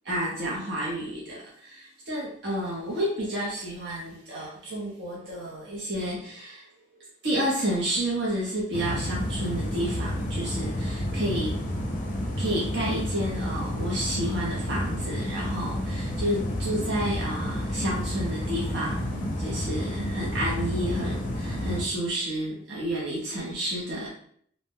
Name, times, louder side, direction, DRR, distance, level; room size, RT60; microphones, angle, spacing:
voice 1, 0.1-6.6 7.2-11.5 12.4-24.1, right 1 dB, 60° right, -5 dB, 0.6 m, -30 dB
sound 1, 8.7-21.8, equal, 40° left, 0.5 m, -30 dB
2.5 x 2.1 x 3.5 m, 0.62 s
head